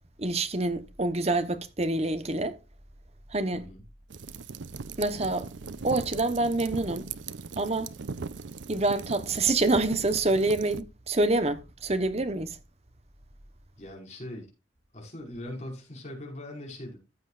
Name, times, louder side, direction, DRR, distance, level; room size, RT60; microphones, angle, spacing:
voice 1, 0.2-2.6 3.3-3.6 5.0-5.5 5.8-7.1 7.6-7.9 8.7-12.6, right 2 dB, 35° right, 1.0 m, -26 dB
sound 1, 4.1-10.8, right 5 dB, 75° right, 0.6 m, -39 dB
voice 2, 13.8-14.5 14.9-17.0, left 1 dB, 40° left, 5.2 m, -40 dB
14.5 x 8.1 x 2.5 m
head